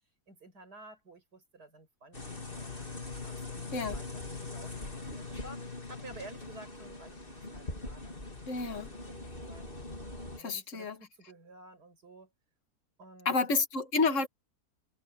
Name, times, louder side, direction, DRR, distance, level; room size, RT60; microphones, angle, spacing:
voice 1, 0.3-8.3 8.6-9.7 10.4-12.3 13.0-13.4, right 2 dB, 90° right, 6.5 m, -53 dB
sound 1, 2.1-10.4, left 3 dB, 35° left, 4.0 m, -42 dB
voice 2, 8.5-8.9 10.4-11.0 13.3-14.3, left 4 dB, 50° left, 2.1 m, -29 dB
omnidirectional pair, 1.7 m